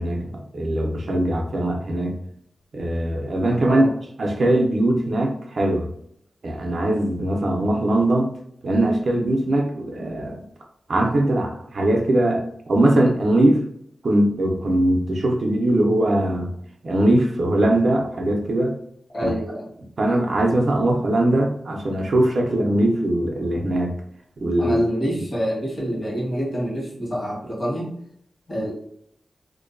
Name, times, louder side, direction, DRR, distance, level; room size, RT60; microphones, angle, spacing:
voice 1, 0.0-2.2 2.7-3.9 4.2-5.9 6.4-8.4 8.6-10.4 10.9-13.6 14.0-16.5 16.8-18.7 19.2-19.3 20.0-23.9 24.4-24.8, right 1 dB, 60° right, 1 dB, 0.5 m, -21 dB
voice 2, 19.1-19.7 24.6-27.9 28.5-28.7, equal, 45° left, -6 dB, 1.2 m, -26 dB
2.5 x 2.2 x 2.5 m, 0.70 s
wide cardioid pair, 115°, 0 cm